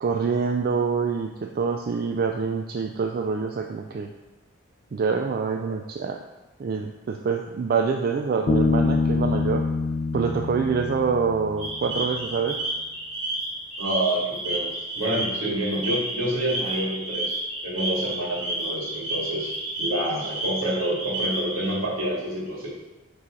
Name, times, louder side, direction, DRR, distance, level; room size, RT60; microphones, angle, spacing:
voice 1, 0.0-4.1 4.9-6.2 6.6-9.6 10.1-12.6, right 5 dB, 45° right, 2 dB, 0.3 m, -26 dB
Bass guitar, 8.5-12.0, left 3 dB, 30° left, 0.3 m, -25 dB
sound 1, 11.6-21.7, right 1 dB, 30° right, 1.5 m, -31 dB
voice 2, 13.8-17.3 17.6-19.5 19.8-22.7, right 1 dB, 75° right, -4 dB, 1.9 m, -28 dB
6.0 x 3.2 x 5.6 m, 1.1 s
head